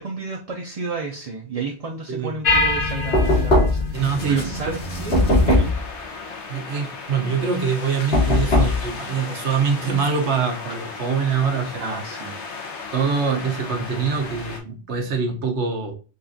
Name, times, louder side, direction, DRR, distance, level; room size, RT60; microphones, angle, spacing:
voice 1, 0.0-5.7 11.8-12.4, right 5 dB, 45° right, 0 dB, 0.5 m, -31 dB
sound 1, 2.4-5.7, left 2 dB, 50° left, 1.2 m, -25 dB
Knock, 3.1-4.0 5.1-5.9 8.1-8.8, left 2 dB, 65° left, 1.6 m, -18 dB
sound 2, 3.9-14.6, left 4 dB, 85° left, 1.1 m, -36 dB
voice 2, 3.9-4.8 6.5-12.0 12.9-15.9, right 5 dB, 85° right, 3 dB, 1.2 m, -24 dB
5.3 x 2.4 x 2.6 m, 0.36 s
omnidirectional pair, 1.1 m